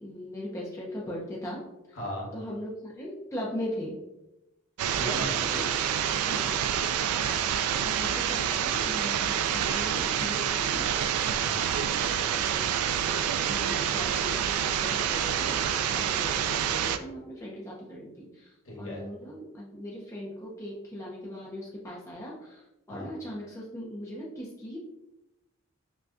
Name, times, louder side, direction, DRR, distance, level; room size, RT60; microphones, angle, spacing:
voice 1, 0.0-1.6 1.9-2.0 2.3-4.0 5.4-5.7 6.2-6.7 7.8-10.9 12.0-24.8, equal, 15° left, -4 dB, 0.5 m, -39 dB
voice 2, 1.9-2.3 5.0-5.4 7.1-7.4 11.2-11.6 18.6-19.0 22.9-23.1, left 1 dB, 60° left, -3 dB, 1.2 m, -38 dB
sound 1, 4.8-17.0, right 9 dB, 90° right, 0.3 m, -27 dB
5.9 x 2.2 x 2.5 m, 0.94 s
head